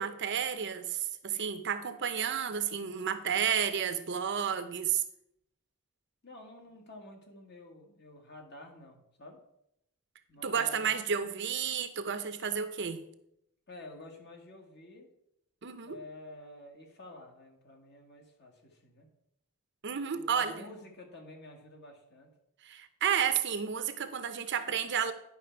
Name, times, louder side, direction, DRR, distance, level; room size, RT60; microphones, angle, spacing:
voice 1, 0.0-5.0 10.4-13.0 15.6-16.0 19.8-20.7 22.6-25.1, right 7 dB, 55° right, 10 dB, 0.7 m, -31 dB
voice 2, 6.2-9.4 10.3-10.9 13.7-15.1 15.8-19.1 20.1-22.3, left 2 dB, 50° left, 2 dB, 1.7 m, -50 dB
10.5 x 5.6 x 4.5 m, 0.79 s
head